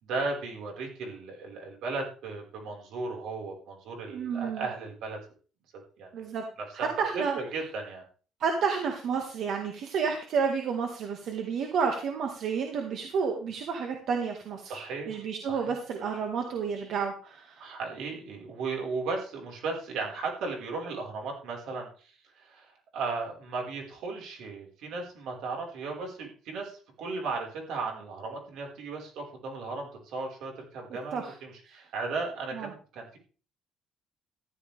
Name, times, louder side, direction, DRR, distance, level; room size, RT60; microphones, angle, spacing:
voice 1, 0.0-5.2 6.0-6.3 6.8-6.9 7.1-8.0 14.6-15.1 15.4-15.7 17.6-22.1 22.4-33.2, right 4 dB, 75° right, 1 dB, 5.0 m, -36 dB
voice 2, 4.1-4.7 6.1-6.4 6.7-7.4 8.4-17.7 31.1-31.3 31.6-31.8 32.5-32.7, right 6 dB, 60° right, 3 dB, 1.9 m, -31 dB
14.5 x 11.5 x 3.5 m, 0.38 s
cardioid pair, 160°, 0 cm